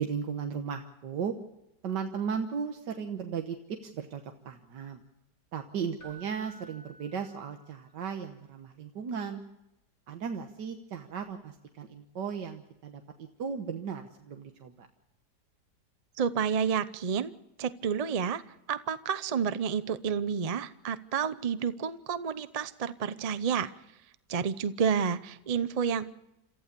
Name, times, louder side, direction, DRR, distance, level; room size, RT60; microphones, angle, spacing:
voice 1, 0.0-1.3 1.8-5.0 5.5-9.4 10.1-14.9, right 6 dB, 85° right, 5 dB, 1.8 m, -36 dB
Keyboard (musical), 6.0-8.0 11.2-11.4, right 2 dB, 50° left, 5.9 m, -53 dB
voice 2, 16.2-17.3 17.6-18.4 18.7-23.7 24.3-26.1, right 7 dB, 50° right, 13 dB, 0.4 m, -30 dB
28.0 x 14.5 x 6.8 m, 0.91 s
omnidirectional pair, 1.8 m